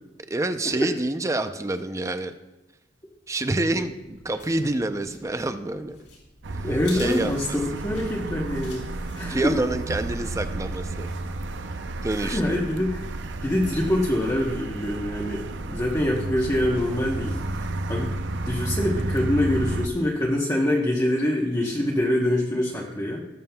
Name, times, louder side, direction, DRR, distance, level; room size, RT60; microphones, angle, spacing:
voice 1, 0.3-2.3 3.3-6.0 6.9-7.6 9.3-11.1 12.0-12.7, right 2 dB, 15° right, 9 dB, 0.4 m, -27 dB
sound 1, 3.7-9.8, left 3 dB, 80° left, 3.4 m, -48 dB
sound 2, 6.4-19.9, right 2 dB, 85° right, 0.6 m, -31 dB
voice 2, 6.6-9.6 12.1-13.1 13.4-18.2 18.4-23.2, left 1 dB, 20° left, -3 dB, 0.9 m, -25 dB
18.0 x 7.3 x 2.2 m, 1.0 s
head